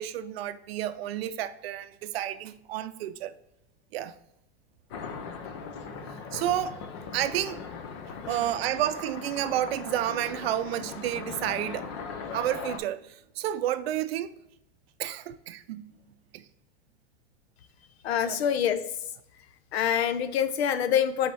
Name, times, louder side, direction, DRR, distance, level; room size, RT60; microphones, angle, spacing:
voice 1, 0.0-3.3 3.9-4.2 5.8-6.9 7.1-7.6 8.3-11.9 12.3-14.3 15.0-15.9 16.3-16.4 18.3-18.4, right 12 dB, 70° right, 0.5 m, -31 dB
sound 1, 4.9-12.8, left 5 dB, 30° left, 0.4 m, -39 dB
voice 2, 18.0-18.8 19.7-21.3, left 9 dB, 75° left, 0.8 m, -25 dB
7.7 x 4.2 x 3.3 m
supercardioid pair, 180°, 32 cm